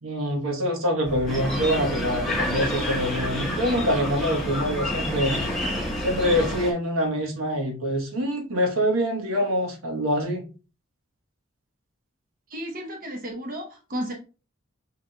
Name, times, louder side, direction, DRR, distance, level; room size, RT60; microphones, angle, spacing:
voice 1, 0.0-5.4 6.0-10.4, equal, 80° right, 1.1 m, -25 dB
sound 1, 1.0-6.6, left 1 dB, 50° left, 0.7 m, -36 dB
sound 2, 1.3-6.7, left 1 dB, ahead, 0.9 m, -29 dB
voice 2, 12.5-14.1, equal, 40° right, 0.8 m, -33 dB
5.7 x 3.4 x 2.2 m
head